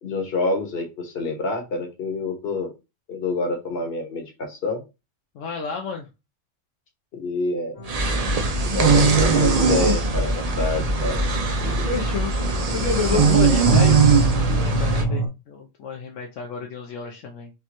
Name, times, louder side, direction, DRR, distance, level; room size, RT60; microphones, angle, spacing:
voice 1, 0.0-2.7 3.1-4.8 7.1-7.8 8.7-11.2 11.6-11.9, left 3 dB, 50° left, 3 dB, 1.3 m, -27 dB
voice 2, 5.3-6.1 11.8-12.3 12.7-17.5, left 5 dB, 75° left, 2 dB, 1.0 m, -30 dB
sound 1, 7.8-12.1 13.6-15.3, right 2 dB, 20° left, 0.9 m, -27 dB
sound 2, 7.9-15.0, right 4 dB, 55° right, 0.4 m, -20 dB
5.1 x 2.3 x 2.9 m, 0.25 s
omnidirectional pair, 1.3 m